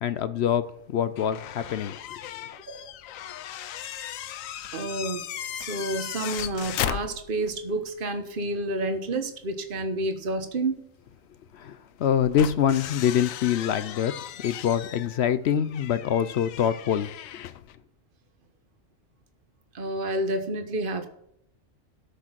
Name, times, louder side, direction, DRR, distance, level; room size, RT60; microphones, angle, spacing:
voice 1, 0.0-2.0 11.5-14.2 14.4-17.1, left 9 dB, 65° left, 0.7 m, -25 dB
sound 1, 1.2-7.6 8.0-8.1 10.1-10.2 12.0-17.8, left 11 dB, 80° left, 1.0 m, -37 dB
voice 2, 4.7-5.3 5.5-10.8 19.7-21.1, right 2 dB, 45° right, 1.3 m, -29 dB
13.5 x 6.2 x 5.9 m
omnidirectional pair, 1.4 m